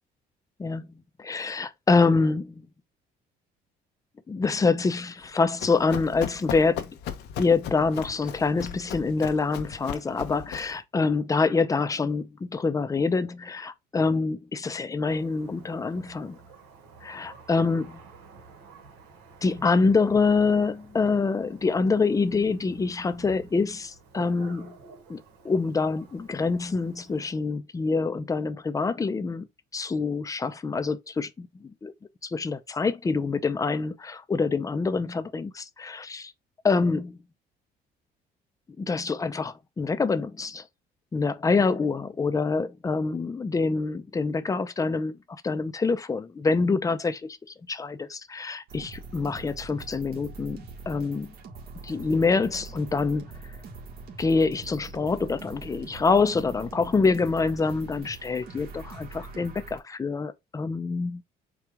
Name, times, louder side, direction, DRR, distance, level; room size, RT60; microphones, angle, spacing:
voice 1, 1.2-2.7 4.3-7.0 7.4-16.4 17.0-17.8 19.4-24.7 25.1-29.5 29.7-31.9 32.2-36.3 36.6-37.2 38.8-40.7 41.1-47.2 47.7-51.3 51.8-53.3 54.2-61.2, left 4 dB, 20° left, 0.5 m, -26 dB
Run, 5.2-10.8, left 9 dB, 80° left, 0.8 m, -37 dB
Thunder, 15.0-27.3, right 4 dB, 85° right, 1.4 m, -50 dB
sound 1, 48.7-59.8, right 3 dB, 65° right, 1.6 m, -43 dB
4.6 x 2.4 x 4.8 m
cardioid pair, 110°, 17 cm